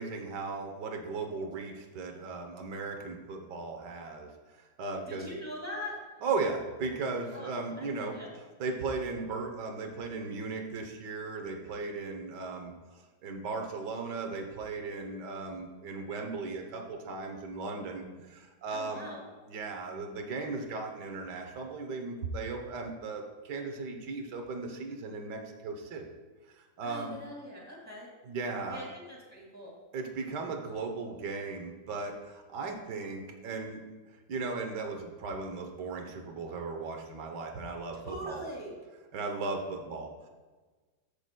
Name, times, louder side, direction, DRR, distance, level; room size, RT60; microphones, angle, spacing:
voice 1, 0.0-5.3 6.2-8.2 8.6-19.1 19.5-26.1 26.5-27.1 28.2-28.9 29.9-33.8 34.3-38.4 39.1-40.3, right 3 dB, 85° right, 3 dB, 1.6 m, -37 dB
voice 2, 5.1-6.0 7.3-7.5 7.8-8.3 18.7-19.2 26.8-28.1 28.7-29.7 37.9-38.8, equal, 10° left, -4 dB, 2.0 m, -42 dB
13.5 x 6.8 x 2.2 m, 1.3 s
omnidirectional pair, 1.8 m